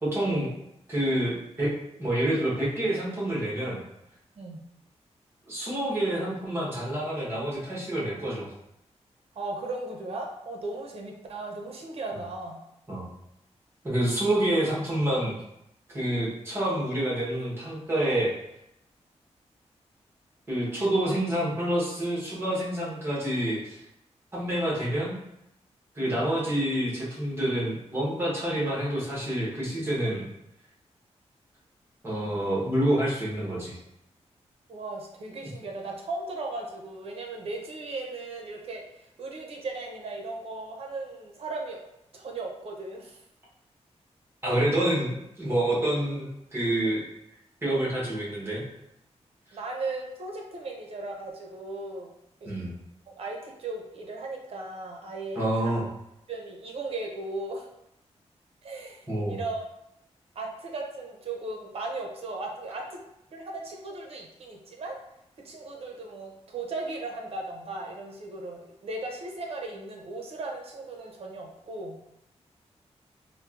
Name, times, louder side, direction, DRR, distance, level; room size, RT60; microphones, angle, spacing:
voice 1, 0.0-0.5 0.9-3.8 5.5-8.5 12.9-13.1 13.8-15.4 15.9-18.3 20.5-23.8 24.3-25.2 25.9-30.3 32.0-33.8 44.4-47.0 47.6-48.6 52.4-52.7 55.3-55.8 59.1-59.4, right 1 dB, 20° right, -7 dB, 0.9 m, -27 dB
voice 2, 9.4-12.6 26.0-26.2 34.7-41.8 42.1-43.2 44.8-44.9 49.5-52.1 52.4-52.5 53.1-55.8 56.3-57.7 58.6-59.6 60.4-63.0 63.3-65.0 65.4-72.0, right 2 dB, 60° right, 0 dB, 0.6 m, -37 dB
4.2 x 2.1 x 2.4 m, 0.82 s
wide cardioid pair, 150°, 12 cm